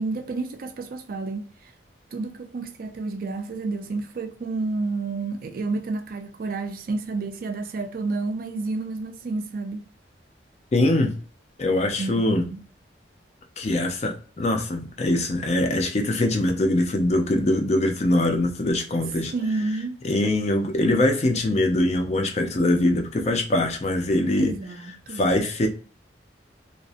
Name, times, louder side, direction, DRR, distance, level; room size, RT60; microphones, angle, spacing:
voice 1, 0.0-1.7 2.1-9.8 12.0-12.6 19.2-20.0 23.6-23.7 24.4-25.2, right 3 dB, 50° right, 0.4 m, -30 dB
voice 2, 10.7-11.1 11.6-12.4 13.6-19.3 20.0-24.6 25.1-25.7, left 1 dB, 35° left, 0.4 m, -22 dB
2.5 x 2.0 x 2.5 m
head